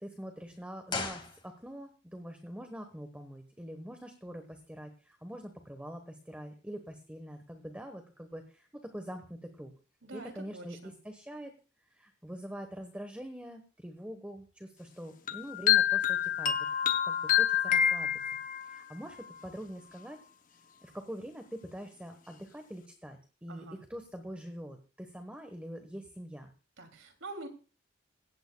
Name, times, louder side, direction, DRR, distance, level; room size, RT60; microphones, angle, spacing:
voice 1, 0.0-9.7 10.1-11.5 11.9-16.7 17.0-18.1 18.6-20.2 20.8-26.5, equal, 5° right, 6 dB, 1.2 m, -44 dB
sound 1, 0.9-2.0 2.2-2.3, left 4 dB, 25° left, 2.0 m, -38 dB
voice 2, 10.0-10.9 23.5-23.8 26.8-27.5, right 2 dB, 90° right, 6 dB, 2.8 m, -45 dB
sound 2, 15.3-18.8, left 9 dB, 45° left, 0.7 m, -27 dB
17.0 x 15.5 x 2.3 m, 0.36 s
head